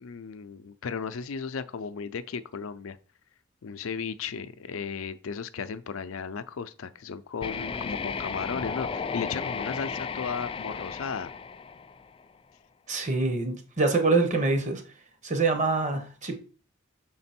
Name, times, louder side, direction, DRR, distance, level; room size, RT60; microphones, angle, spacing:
voice 1, 0.0-3.0 3.6-11.3, left 6 dB, 90° left, 0.5 m, -35 dB
sound 1, 7.4-12.3, left 5 dB, 25° left, 0.3 m, -34 dB
voice 2, 12.9-14.8 15.2-16.4, right 3 dB, 35° right, 0.9 m, -25 dB
6.0 x 3.9 x 4.3 m
head